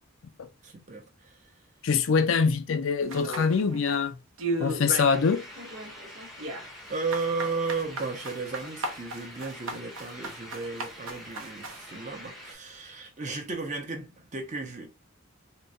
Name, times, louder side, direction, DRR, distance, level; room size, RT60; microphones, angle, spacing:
voice 1, 0.6-1.5 6.9-14.9, right 4 dB, 35° right, 0.7 m, -34 dB
voice 2, 1.8-4.2 4.6-5.5, left 5 dB, 70° left, 0.4 m, -24 dB
sound 1, 3.1-4.0 4.4-5.3 5.6-11.8, right 2 dB, 80° right, 0.7 m, -35 dB
sound 2, 5.0-12.5, equal, ahead, 0.7 m, -46 dB
3.6 x 2.1 x 2.6 m
head